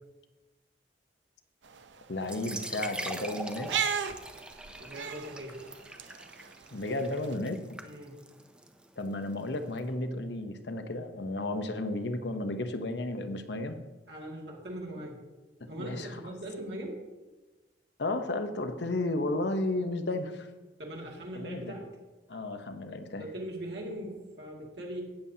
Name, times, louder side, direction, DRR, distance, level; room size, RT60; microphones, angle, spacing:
sound 1, 1.6-7.3, right 8 dB, 90° right, 0.6 m, -38 dB
voice 1, 2.1-3.7 6.7-7.6 9.0-13.8 15.6-16.2 18.0-20.5 21.3-21.8 22.3-23.2, left 2 dB, 75° left, 8 dB, 0.9 m, -33 dB
sound 2, 2.2-9.8, right 1 dB, 5° right, 0.5 m, -43 dB
voice 2, 4.8-5.7 7.8-8.2 14.1-15.2 15.7-17.0 20.8-21.9 23.2-25.0, right 1 dB, 70° right, -2 dB, 2.0 m, -40 dB
17.5 x 7.1 x 2.8 m, 1.2 s
head